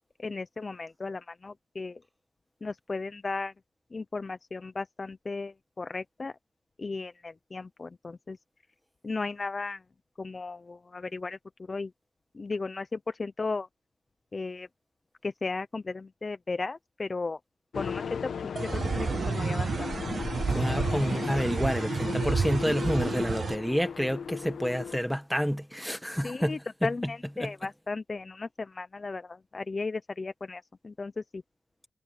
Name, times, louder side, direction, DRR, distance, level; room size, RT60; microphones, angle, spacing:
voice 1, 0.2-2.0 2.6-3.5 3.9-6.3 6.8-8.4 9.0-9.8 10.2-11.4 11.7-11.9 12.3-13.7 14.3-14.7 15.2-17.4 17.8-18.5 19.0-19.9 23.1-23.2 26.2-31.4, left 3 dB, 30° left, 0.6 m, -35 dB
sound 1, 17.7-25.0, left 6 dB, 70° left, 1.1 m, -36 dB
sound 2, 18.6-23.6, right 5 dB, 45° right, 0.4 m, -30 dB
voice 2, 20.5-26.9 27.4-27.5, equal, ahead, 1.7 m, -29 dB
wide cardioid pair, 130°, 0 cm